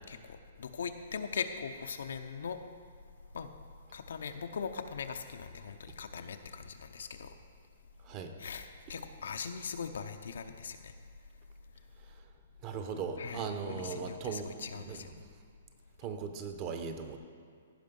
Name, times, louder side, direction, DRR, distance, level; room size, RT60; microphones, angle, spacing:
voice 1, 0.1-2.6 3.3-3.5 3.9-7.3 8.4-10.9 13.2-15.1, left 6 dB, 75° left, 8 dB, 0.7 m, -40 dB
voice 2, 12.6-14.5 14.7-15.0 16.0-17.2, right 6 dB, 25° right, 6 dB, 0.8 m, -38 dB
15.5 x 5.2 x 5.3 m, 2.1 s
hypercardioid pair, 165°, 0 cm